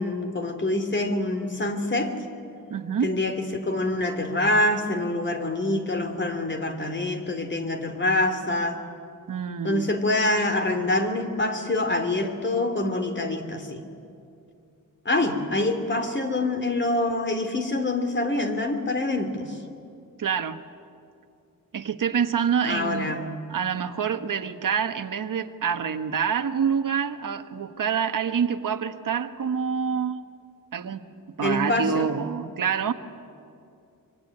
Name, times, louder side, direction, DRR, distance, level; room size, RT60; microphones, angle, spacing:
voice 1, 0.0-2.1 3.0-8.8 9.6-13.8 15.0-19.6 22.6-23.3 31.4-32.1, left 2 dB, 35° left, 6 dB, 2.9 m, -25 dB
voice 2, 2.7-3.1 9.3-9.9 20.2-20.6 21.7-23.1 23.5-30.2 30.7-31.0 31.4-32.9, right 7 dB, 65° right, 9 dB, 1.3 m, -26 dB
25.0 x 24.0 x 9.8 m, 2.5 s
wide cardioid pair, 125°, 34 cm